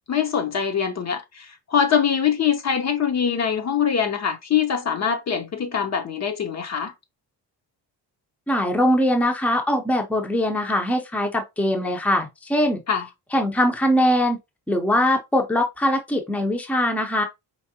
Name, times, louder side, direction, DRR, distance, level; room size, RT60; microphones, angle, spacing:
voice 1, 0.1-6.9 12.9-13.1, left 7 dB, 40° left, 0.7 m, -23 dB
voice 2, 8.5-12.8 13.3-14.4 14.7-17.2, left 1 dB, 5° left, 0.6 m, -21 dB
4.6 x 3.1 x 2.8 m
cardioid pair, 130°, 41 cm